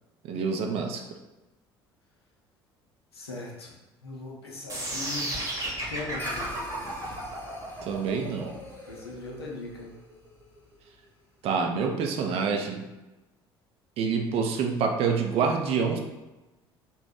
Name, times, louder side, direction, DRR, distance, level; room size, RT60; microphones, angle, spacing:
voice 1, 0.3-1.0 7.8-8.5 11.4-12.9 14.0-16.0, right 5 dB, 50° right, 3 dB, 0.4 m, -27 dB
voice 2, 3.1-3.8 4.0-6.3 8.9-10.0, left 3 dB, 80° left, -2 dB, 0.6 m, -39 dB
sound 1, 4.7-10.7, right 1 dB, 25° right, 0.9 m, -34 dB
sound 2, 6.2-10.8, left 1 dB, 15° left, 0.8 m, -43 dB
2.8 x 2.2 x 3.5 m, 1.1 s
figure-of-eight pair, 55°, 13 cm